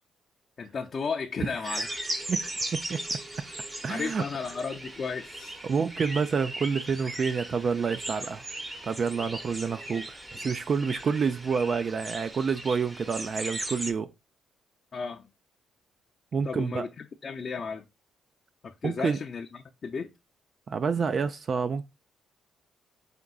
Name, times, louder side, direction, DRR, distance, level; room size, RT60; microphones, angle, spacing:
voice 1, 0.6-1.9 3.9-5.6 14.9-15.3 16.4-17.8 18.6-20.1, left 5 dB, 45° left, 0.5 m, -34 dB
sound 1, 1.6-13.9, right 1 dB, 20° right, 0.8 m, -38 dB
voice 2, 2.3-3.0 3.8-4.2 5.6-8.4 8.8-14.1 16.3-16.9 18.8-19.2 20.7-21.8, right 5 dB, 45° right, 0.3 m, -28 dB
5.1 x 3.6 x 2.3 m
cardioid pair, 90°, 0 cm